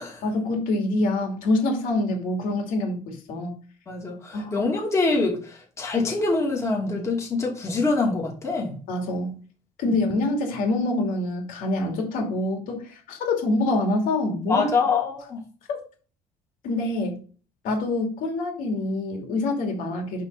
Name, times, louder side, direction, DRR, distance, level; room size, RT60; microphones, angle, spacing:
voice 1, 0.2-3.5 4.3-4.6 8.9-9.4 9.8-14.7 15.7-15.8 16.6-17.2 17.6-20.2, left 2 dB, 80° left, 2 dB, 2.6 m, -26 dB
voice 2, 3.9-8.8 9.9-10.0 14.4-15.4, left 3 dB, 20° left, -1 dB, 2.4 m, -25 dB
11.0 x 3.8 x 5.4 m, 0.40 s
cardioid pair, 150°, 14 cm